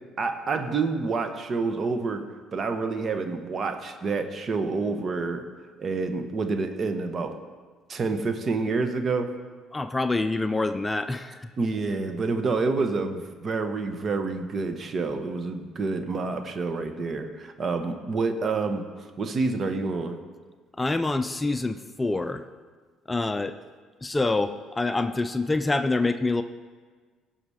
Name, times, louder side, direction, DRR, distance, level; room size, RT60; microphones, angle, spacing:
voice 1, 0.2-2.2 2.5-5.5 5.8-7.4 7.9-9.4 11.6-18.9 19.2-20.2, right 4 dB, 45° right, 7 dB, 1.2 m, -28 dB
voice 2, 9.7-11.5 20.8-22.4 23.1-23.6 24.0-26.4, left 2 dB, 20° left, 10 dB, 0.5 m, -26 dB
17.5 x 5.9 x 5.0 m, 1.5 s
hypercardioid pair, 65°, 0 cm